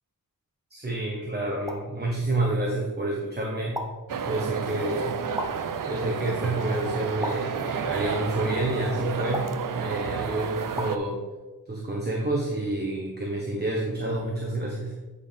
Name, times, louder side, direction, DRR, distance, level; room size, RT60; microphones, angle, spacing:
voice 1, 0.7-3.8 4.2-5.2 5.8-9.4 9.7-11.2 11.7-14.9, right 2 dB, 30° right, -2 dB, 1.3 m, -28 dB
sound 1, 1.7-2.0 3.8-4.1 5.4-5.8 7.2-7.7 9.3-9.7 10.8-11.1, equal, 10° right, 0.8 m, -34 dB
sound 2, 4.1-11.0, right 6 dB, 65° right, 0.6 m, -31 dB
9.4 x 5.6 x 3.6 m, 1.2 s
wide cardioid pair, 90°, 35 cm